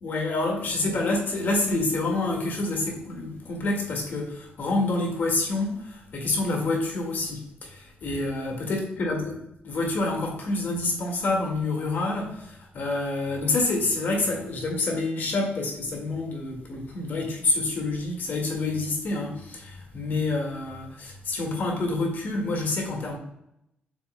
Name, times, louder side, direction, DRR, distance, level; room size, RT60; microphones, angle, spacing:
voice 1, 0.0-23.2, left 2 dB, 55° left, 0 dB, 1.9 m, -27 dB
7.6 x 6.0 x 2.2 m, 0.79 s
wide cardioid pair, 150°, 4 cm